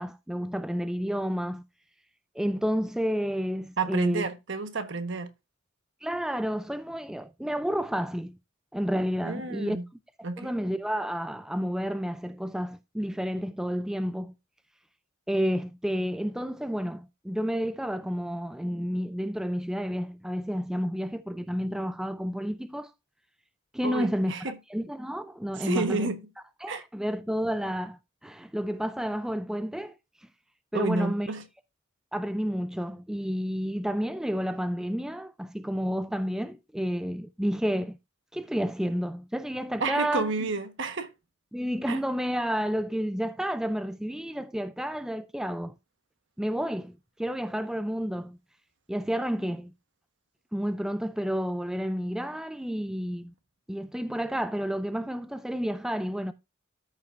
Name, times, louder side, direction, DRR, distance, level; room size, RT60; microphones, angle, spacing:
voice 1, 0.0-1.6 2.4-4.3 6.0-8.3 8.7-9.8 10.4-14.3 15.3-22.9 23.7-24.3 24.7-26.1 26.6-29.9 30.7-31.3 32.1-38.0 38.3-40.3 41.5-45.7 46.4-48.4 48.9-49.7 50.5-53.3 53.7-56.3, equal, 5° right, 0.3 m, -30 dB
voice 2, 3.8-5.3 9.2-9.8 10.2-10.5 23.8-24.6 25.6-26.2 26.7-26.8 30.7-31.4 39.8-41.1 41.9-42.0, right 3 dB, 60° right, 1.2 m, -30 dB
13.5 x 5.6 x 2.5 m
head